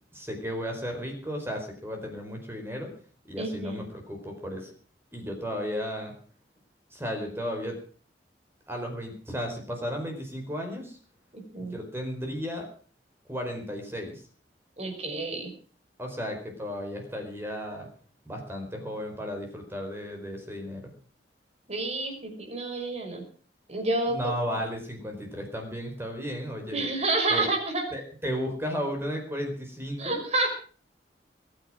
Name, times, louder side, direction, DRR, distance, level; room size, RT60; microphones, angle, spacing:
voice 1, 0.1-2.9 3.3-4.7 5.1-6.1 6.9-7.8 8.7-11.0 11.6-12.7 13.3-14.2 16.0-17.9 18.3-20.9 24.1-26.8 27.3-27.4 27.9-30.2, equal, 15° right, 3 dB, 4.6 m, -34 dB
voice 2, 3.4-3.8 11.3-11.8 14.8-15.5 21.7-23.2 23.7-24.2 26.7-27.8 30.0-30.5, right 2 dB, 35° right, 3 dB, 6.0 m, -29 dB
21.5 x 10.0 x 6.2 m, 0.43 s
head